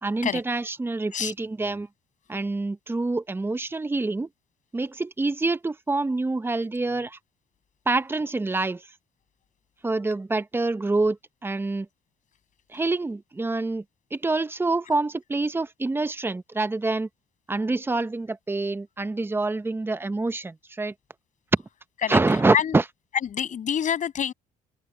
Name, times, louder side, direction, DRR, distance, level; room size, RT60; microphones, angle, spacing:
voice 1, 0.0-1.9 2.3-4.3 4.7-7.2 7.9-8.9 9.8-11.9 12.7-13.8 14.1-17.1 17.5-20.9 21.5-21.6 22.1-22.8, right 3 dB, 15° right, 0.8 m, -26 dB
voice 2, 23.3-24.3, left 8 dB, 50° left, 6.9 m, -26 dB
open air
cardioid pair, 110°, 17 cm